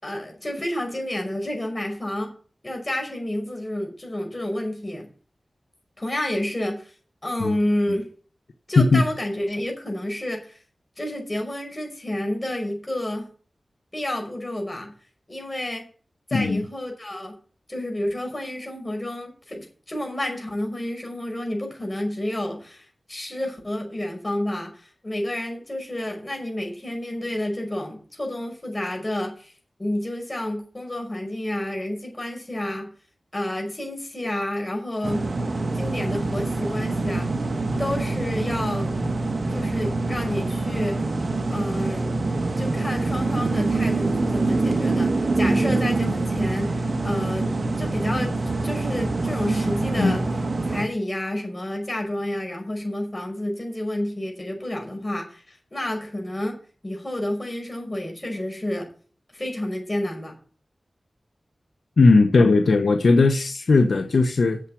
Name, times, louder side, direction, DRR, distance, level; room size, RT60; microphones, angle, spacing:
voice 1, 0.0-2.3 2.6-5.1 6.0-6.9 7.2-8.1 8.7-10.6 11.0-13.3 13.9-14.9 15.3-15.9 16.3-17.3 17.7-29.5 29.8-32.9 33.3-35.3 35.7-37.3 37.8-38.9 39.5-41.0 41.5-42.1 42.6-47.5 47.8-48.4 48.6-50.2 50.7-56.6 56.8-58.9 59.3-60.3, left 1 dB, 25° left, 5.5 m, -30 dB
voice 2, 16.3-16.6 50.0-50.2 62.0-64.6, left 3 dB, 80° left, 1.1 m, -17 dB
sound 1, 35.0-50.8, right 2 dB, 60° right, 1.4 m, -25 dB
8.2 x 7.4 x 8.5 m
wide cardioid pair, 60°, 0 cm